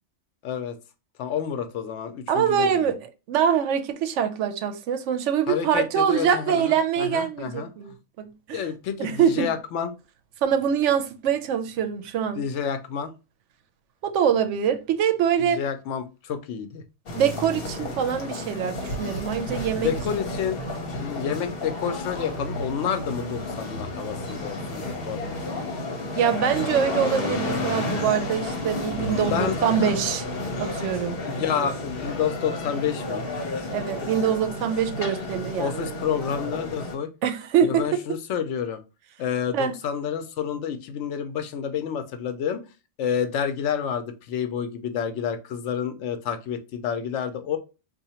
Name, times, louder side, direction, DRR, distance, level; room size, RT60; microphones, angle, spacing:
voice 1, 0.4-0.8 1.2-2.9 5.5-7.7 8.5-9.9 12.4-13.1 15.4-16.8 19.8-25.7 29.3-29.9 31.3-33.3 35.6-37.1 37.6-38.8 39.2-42.6 43.0-47.6, left 7 dB, 85° left, 0.9 m, -29 dB
voice 2, 2.3-3.0 3.3-8.6 9.0-9.5 10.4-12.4 14.0-15.6 17.1-19.9 26.2-30.2 30.6-31.2 33.7-36.0 37.2-38.0 39.5-39.7, right 8 dB, 85° right, 0.9 m, -24 dB
sound 1, 17.1-36.9, left 2 dB, 55° left, 1.0 m, -31 dB
2.8 x 2.5 x 4.1 m
omnidirectional pair, 1.2 m